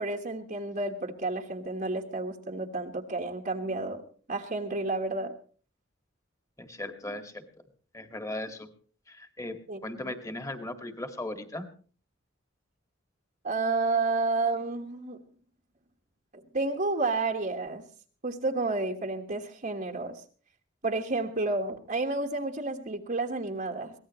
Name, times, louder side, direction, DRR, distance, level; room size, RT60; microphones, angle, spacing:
voice 1, 0.0-4.0 4.3-5.3 9.7-10.2 13.4-15.2 16.3-17.8 18.2-20.2 20.8-23.9, right 3 dB, 45° right, 2 dB, 1.5 m, -31 dB
voice 2, 6.6-7.4 7.9-8.7 9.1-9.6 9.8-11.7, left 1 dB, 15° left, 7 dB, 1.9 m, -37 dB
23.0 x 17.5 x 3.1 m, 0.41 s
head